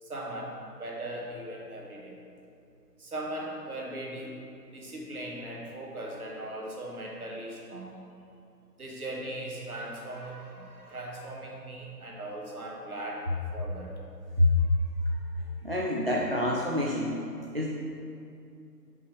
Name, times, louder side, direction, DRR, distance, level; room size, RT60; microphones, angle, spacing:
voice 1, 0.0-2.2 3.0-4.3 4.7-7.9 8.8-14.0, right 1 dB, 60° right, -2 dB, 1.7 m, -39 dB
voice 2, 15.6-17.2 17.5-17.7, left 1 dB, 40° right, -3 dB, 0.5 m, -26 dB
9.5 x 5.6 x 3.4 m, 2.6 s
figure-of-eight pair, 155°, 50 cm